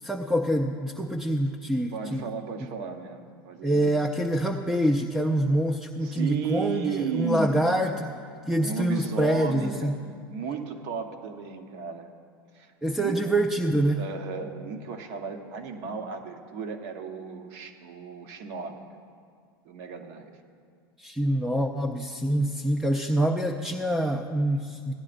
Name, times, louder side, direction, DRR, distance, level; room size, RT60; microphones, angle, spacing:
voice 1, 0.0-2.3 3.6-8.1 8.5-10.0 12.8-14.1 21.0-24.9, right 1 dB, 5° right, 2 dB, 0.5 m, -26 dB
voice 2, 1.9-3.9 6.0-7.6 8.6-9.9 10.3-12.1 12.5-12.7 13.0-13.2 14.0-19.0 19.6-20.3, right 6 dB, 60° right, 5 dB, 1.1 m, -34 dB
16.0 x 10.5 x 2.6 m, 2.2 s
hypercardioid pair, 95°, 12 cm